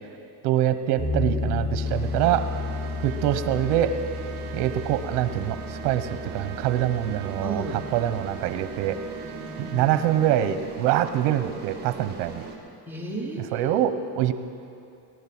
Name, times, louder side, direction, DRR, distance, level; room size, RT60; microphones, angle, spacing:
voice 1, 0.4-2.5 3.0-4.0 4.5-7.6 7.9-9.0 9.6-12.4 13.5-14.3, right 11 dB, 80° right, 10 dB, 1.0 m, -24 dB
sound 1, 1.0-9.1, left 4 dB, 10° left, 3.9 m, -33 dB
sound 2, 1.8-12.6, right 6 dB, 25° right, 2.2 m, -41 dB
Trumpet, 2.4-10.5, right 9 dB, 50° right, 0.9 m, -43 dB
voice 2, 7.4-7.8 9.2-10.0 12.9-13.9, right 2 dB, 5° right, -2 dB, 1.4 m, -34 dB
19.0 x 11.0 x 6.1 m, 2.7 s
cardioid pair, 165°, 39 cm